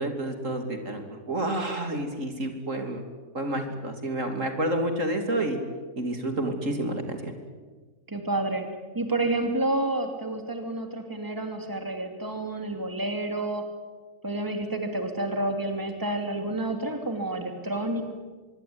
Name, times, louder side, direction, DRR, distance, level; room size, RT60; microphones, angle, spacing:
voice 1, 0.0-3.0 3.3-5.6 6.0-7.3, right 1 dB, 65° right, 5 dB, 3.4 m, -29 dB
voice 2, 8.1-8.6 8.9-13.6 14.2-18.0, right 2 dB, 15° right, 5 dB, 3.0 m, -29 dB
24.5 x 22.5 x 9.7 m, 1.4 s
omnidirectional pair, 1.5 m